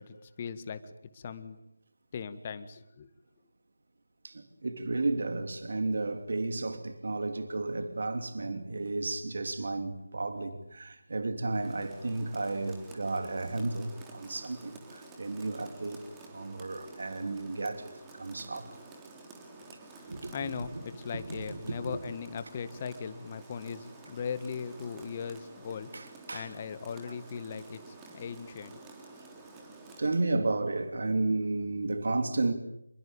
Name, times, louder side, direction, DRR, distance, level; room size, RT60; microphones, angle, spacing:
voice 1, 0.0-1.6 2.1-3.1 20.0-28.8, left 6 dB, 25° left, 1.8 m, -39 dB
voice 2, 4.2-16.0 16.3-18.7 20.1-20.3 21.1-21.4 21.9-22.0 25.9-26.5 27.1-27.2 30.0-32.5, right 2 dB, 50° right, 3.0 m, -33 dB
Rain, 11.5-30.2, right 3 dB, 10° right, 3.5 m, -51 dB
28.0 x 22.5 x 8.8 m
figure-of-eight pair, 160°, 0 cm